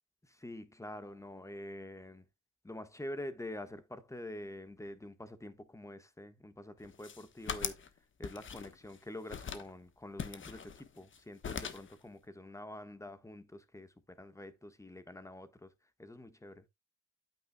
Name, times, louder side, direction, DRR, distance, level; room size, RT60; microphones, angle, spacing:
voice 1, 0.2-2.3 2.6-7.8 8.2-15.7 16.0-16.6, left 1 dB, 10° left, 1.4 m, -46 dB
sound 1, 6.8-7.9 8.2-9.0 9.3-9.7 10.2-11.2 11.4-11.9, left 6 dB, 40° left, 1.3 m, -41 dB
9.1 x 8.9 x 2.3 m
cardioid pair, 90°, 30 cm